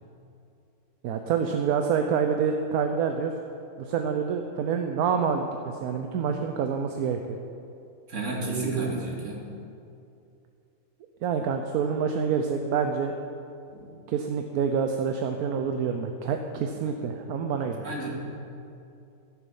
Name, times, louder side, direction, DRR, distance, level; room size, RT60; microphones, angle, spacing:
voice 1, 1.0-3.3 3.8-7.4 8.4-9.0 11.2-13.1 14.1-17.8, right 6 dB, 75° right, 5 dB, 1.2 m, -27 dB
voice 2, 8.1-9.4 13.7-13.9 17.0-17.2 17.6-18.1, right 1 dB, 50° right, -3 dB, 2.5 m, -33 dB
14.0 x 8.3 x 5.5 m, 2.6 s
omnidirectional pair, 1.6 m